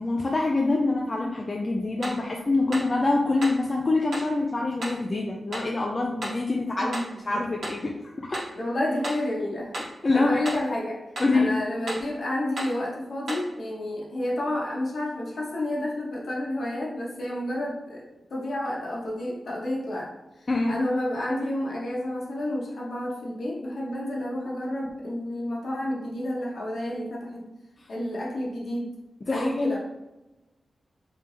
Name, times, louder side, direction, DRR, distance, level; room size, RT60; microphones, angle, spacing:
voice 1, 0.0-7.0 7.3-8.4 10.0-10.4 11.2-11.6 20.5-20.8 29.3-29.8, left 2 dB, 30° left, -1 dB, 0.3 m, -25 dB
sound 1, 2.0-2.3 2.7-2.9 3.4-3.7 4.1-4.3 4.8-5.0 5.5-5.7 6.2-6.5 6.9-7.2 7.6-7.9 8.3-8.6 9.0-9.3 9.7-10.0 10.4-10.7 11.2-11.4 11.9-12.1 12.6-12.8 13.3-13.5, right 1 dB, 60° right, 1.1 m, -34 dB
voice 2, 6.8-7.4 8.5-9.7 10.1-11.0 11.3-18.0 18.3-20.1 20.4-27.5 27.9-28.9 29.3-29.8, left 1 dB, 55° left, -3 dB, 0.9 m, -30 dB
3.3 x 3.3 x 2.6 m, 1.0 s
wide cardioid pair, 160°, 0 cm